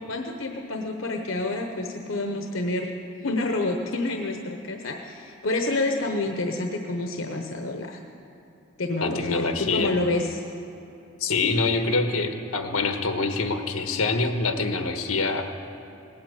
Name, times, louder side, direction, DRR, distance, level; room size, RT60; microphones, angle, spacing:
voice 1, 0.1-2.9 3.2-8.0 8.8-10.4, left 2 dB, 65° left, 3 dB, 1.0 m, -28 dB
voice 2, 9.0-9.9 11.2-15.6, left 3 dB, 90° left, 5 dB, 1.4 m, -25 dB
19.0 x 8.7 x 8.3 m, 2.8 s
head